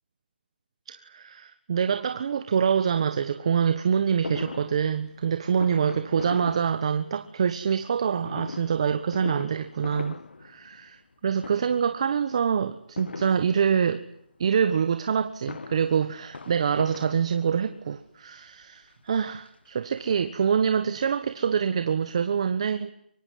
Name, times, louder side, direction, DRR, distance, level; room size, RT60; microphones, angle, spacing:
voice 1, 0.9-14.0 14.4-22.9, right 7 dB, 35° right, 1.4 m, -25 dB
Fireworks, 4.2-7.4 8.2-11.1 11.4-12.0 13.0-14.0 15.2-17.8 18.6-18.7 19.0-19.1 19.4-20.7 21.0-21.1 21.3-21.4, left 4 dB, 80° left, 1.8 m, -40 dB
24.5 x 24.0 x 9.5 m
hypercardioid pair, 175°, 6 cm